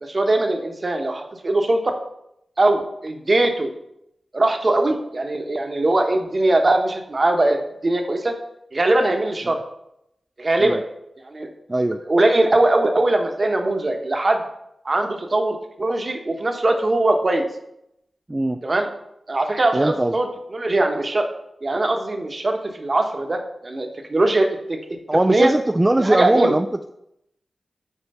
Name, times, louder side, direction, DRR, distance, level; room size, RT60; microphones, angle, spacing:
voice 1, 0.0-1.9 2.6-3.7 4.3-8.3 8.7-9.6 10.4-10.8 11.2-11.5 12.1-14.4 14.8-17.5 18.6-18.9 19.3-21.3 21.6-24.8 25.3-25.5 26.0-26.6, right 2 dB, 45° right, 4 dB, 1.0 m, -21 dB
voice 2, 11.7-12.0 18.3-18.6 19.7-20.1 25.1-26.9, right 1 dB, 20° right, 7 dB, 0.3 m, -20 dB
5.6 x 4.5 x 5.4 m, 0.80 s
cardioid pair, 60°, 0 cm